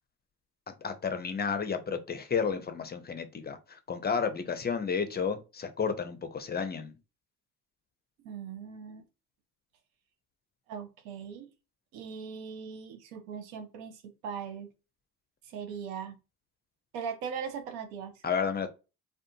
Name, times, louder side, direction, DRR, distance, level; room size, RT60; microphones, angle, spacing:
voice 1, 0.7-6.9 18.2-18.7, left 6 dB, 25° left, 0.5 m, -32 dB
voice 2, 8.2-9.0 10.7-11.5 11.9-14.7 15.5-16.2 16.9-18.1, right 7 dB, 85° right, 0.6 m, -39 dB
2.4 x 2.3 x 2.7 m
hypercardioid pair, 55°, 40 cm